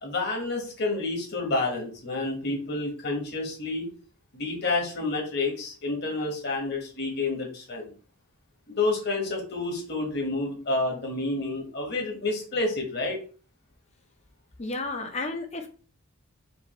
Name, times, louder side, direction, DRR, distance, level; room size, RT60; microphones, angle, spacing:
voice 1, 0.0-3.9 4.3-7.8 8.7-13.2, left 2 dB, 50° left, 0 dB, 1.3 m, -29 dB
voice 2, 14.6-15.7, left 2 dB, 30° left, 5 dB, 0.6 m, -32 dB
5.1 x 2.6 x 3.1 m, 0.39 s
head